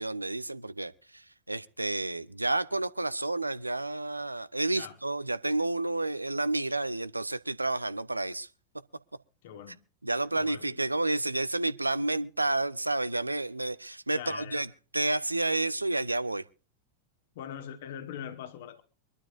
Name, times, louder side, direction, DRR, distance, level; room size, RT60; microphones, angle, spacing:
voice 1, 0.0-8.5 10.0-14.7 14.9-16.4, right 2 dB, 85° right, 0.6 m, -30 dB
voice 2, 9.4-9.8 10.4-10.8 14.1-14.6 17.3-18.8, left 9 dB, 55° left, 1.4 m, -42 dB
24.0 x 12.5 x 2.5 m
figure-of-eight pair, 90°, 0 cm